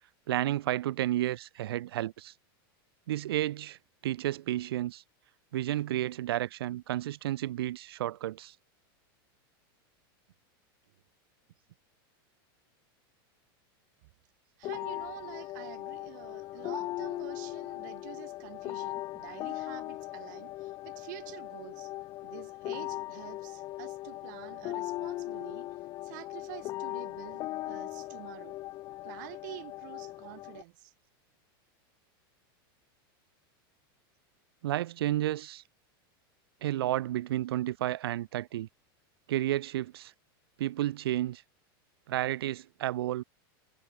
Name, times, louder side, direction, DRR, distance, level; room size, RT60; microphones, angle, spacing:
voice 1, 0.3-2.3 3.1-3.8 4.0-5.0 5.5-8.5 34.6-35.6 36.6-38.7 39.3-40.1 40.6-41.4 42.1-43.2, right 14 dB, 90° right, 1.2 m, -31 dB
sound 1, 14.6-30.6, left 17 dB, 30° left, 1.1 m, -39 dB
voice 2, 14.6-21.9 22.2-25.7 26.0-28.6 29.0-30.9, right 23 dB, 50° right, 2.8 m, -48 dB
supercardioid pair, 170°, 12 cm